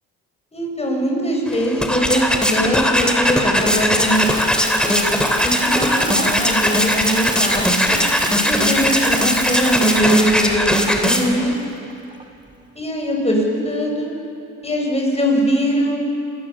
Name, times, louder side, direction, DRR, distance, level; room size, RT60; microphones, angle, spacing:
voice 1, 0.5-7.9 8.4-11.5 12.8-14.1 14.6-16.0, equal, 20° left, 0 dB, 7.2 m, -21 dB
sound 1, 1.5-11.5, left 1 dB, 5° left, 3.2 m, -19 dB
Water tap faucet / Sink (filling or washing) / Splash splatter, 3.9-12.5, right 1 dB, 15° right, 4.0 m, -30 dB
27.0 x 20.0 x 7.4 m, 2.6 s
cardioid pair, 90°, 30 cm